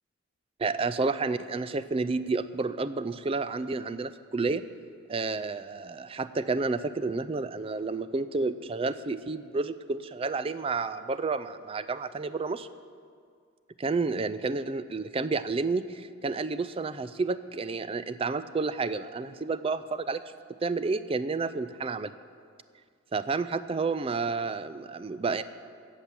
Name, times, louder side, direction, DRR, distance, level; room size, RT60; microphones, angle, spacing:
voice 1, 0.6-4.6 5.1-12.7 13.8-20.2 20.6-22.1 23.1-25.4, right 4 dB, 25° right, 14 dB, 0.4 m, -30 dB
16.5 x 5.9 x 7.1 m, 2.1 s
head